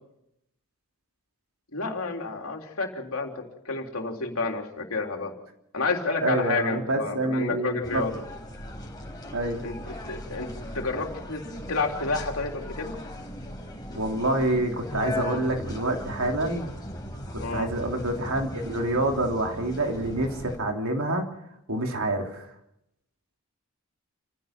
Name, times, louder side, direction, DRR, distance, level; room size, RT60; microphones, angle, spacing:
voice 1, 1.7-5.3 5.7-8.2 9.6-10.5 10.7-11.4 11.7-13.0 17.4-17.7, left 3 dB, 70° left, 2 dB, 3.6 m, -30 dB
voice 2, 6.2-8.1 9.3-9.6 13.9-16.7 17.3-21.3 21.7-22.4, right 1 dB, 70° right, 3 dB, 3.2 m, -27 dB
sound 1, 7.8-20.6, left 1 dB, 20° left, 4.3 m, -38 dB
28.5 x 16.0 x 6.0 m, 0.81 s
head